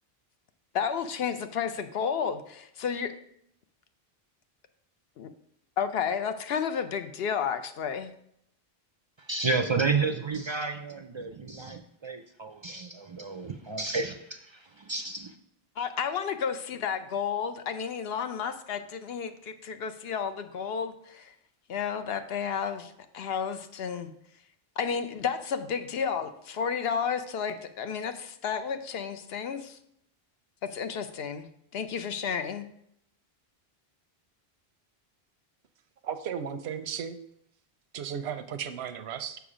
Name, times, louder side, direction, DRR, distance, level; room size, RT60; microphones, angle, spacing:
voice 1, 0.7-3.1 5.2-5.3 5.8-8.1 15.8-21.3 21.7-24.1 24.8-29.8 30.6-31.5 31.7-32.6, left 7 dB, 75° left, 9 dB, 0.9 m, -32 dB
voice 2, 9.2-15.3, right 4 dB, 45° right, 7 dB, 0.3 m, -31 dB
voice 3, 36.0-37.1 37.9-39.4, right 8 dB, 90° right, 10 dB, 0.9 m, -35 dB
7.0 x 5.1 x 5.0 m, 0.74 s
omnidirectional pair, 1.0 m